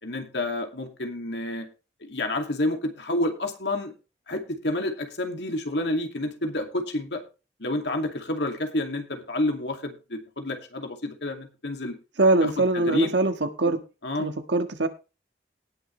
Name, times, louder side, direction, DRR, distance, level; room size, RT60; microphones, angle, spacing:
voice 1, 0.0-1.7 2.0-3.9 4.3-7.2 7.6-12.0 12.4-13.1 14.0-14.3, left 1 dB, 80° left, 2.4 m, -29 dB
voice 2, 12.2-13.8 14.2-14.9, right 2 dB, 90° right, 1.6 m, -22 dB
18.5 x 7.1 x 3.3 m
head